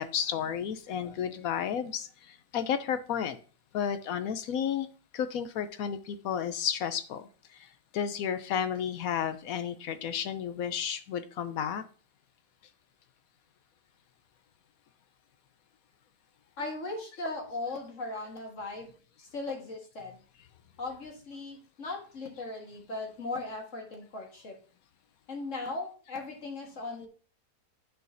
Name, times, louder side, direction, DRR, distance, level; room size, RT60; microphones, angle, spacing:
voice 1, 0.0-3.4 3.7-4.9 5.1-7.7 7.9-11.8, left 8 dB, 70° left, 1.0 m, -32 dB
voice 2, 16.6-18.9 19.2-20.2 20.8-24.5 25.3-27.1, left 2 dB, 50° left, 1.9 m, -38 dB
9.2 x 4.8 x 2.6 m
omnidirectional pair, 1.7 m